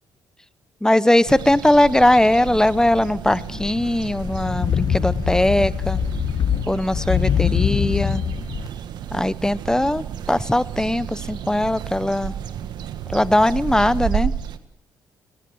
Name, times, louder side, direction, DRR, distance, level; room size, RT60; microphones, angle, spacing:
voice 1, 0.8-6.0 6.7-8.2 9.1-12.3 13.1-14.3, left 1 dB, 10° left, 16 dB, 1.0 m, -19 dB
sound 1, 1.2-14.6, right 9 dB, 70° right, 1.5 m, -32 dB
sound 2, 3.3-8.7, left 8 dB, 55° left, 1.0 m, -24 dB
29.0 x 19.0 x 6.3 m, 0.80 s
supercardioid pair, 65°, 8 cm